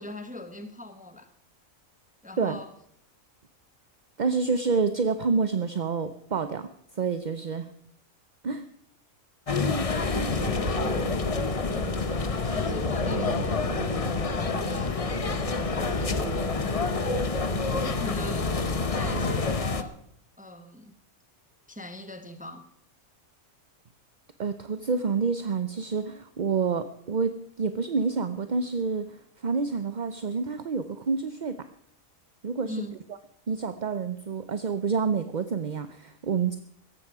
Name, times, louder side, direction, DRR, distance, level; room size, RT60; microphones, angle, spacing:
voice 1, 0.0-1.3 2.2-2.7 9.8-11.2 11.7-13.6 14.7-15.0 15.7-16.2 17.7-20.0 20.4-21.0 21.7-22.7 32.7-33.0, left 1 dB, 5° right, 1.1 m, -41 dB
voice 2, 4.2-6.7 6.9-7.7 8.4-8.6 24.4-31.6 32.4-32.8 33.5-36.6, right 5 dB, 40° right, 0.7 m, -28 dB
sound 1, 9.5-19.8, left 4 dB, 30° left, 0.8 m, -28 dB
sound 2, 9.9-19.4, equal, 55° left, 4.3 m, -33 dB
16.5 x 14.0 x 4.8 m
omnidirectional pair, 1.5 m